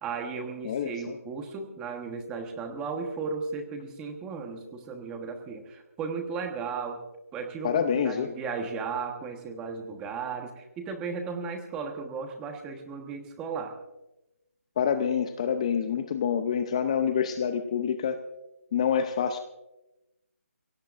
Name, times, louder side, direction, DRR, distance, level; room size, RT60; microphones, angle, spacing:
voice 1, 0.0-7.0 7.3-13.7, right 5 dB, 10° right, 5 dB, 1.2 m, -35 dB
voice 2, 0.6-1.1 7.6-8.3 14.8-18.2 18.7-19.4, left 7 dB, 25° left, 9 dB, 0.6 m, -27 dB
24.0 x 17.0 x 2.5 m, 0.97 s
hypercardioid pair, 165°, 8 cm